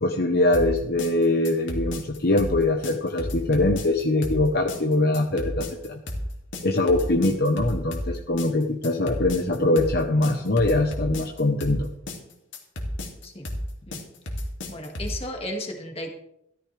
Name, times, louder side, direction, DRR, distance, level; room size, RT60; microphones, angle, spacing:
voice 1, 0.0-6.0 6.6-11.9, left 2 dB, 50° left, 3 dB, 1.0 m, -23 dB
sound 1, 0.5-15.2, left 1 dB, 70° left, 2.6 m, -32 dB
voice 2, 14.7-16.1, left 1 dB, 30° left, 2 dB, 2.1 m, -34 dB
14.5 x 13.5 x 3.4 m, 0.77 s
head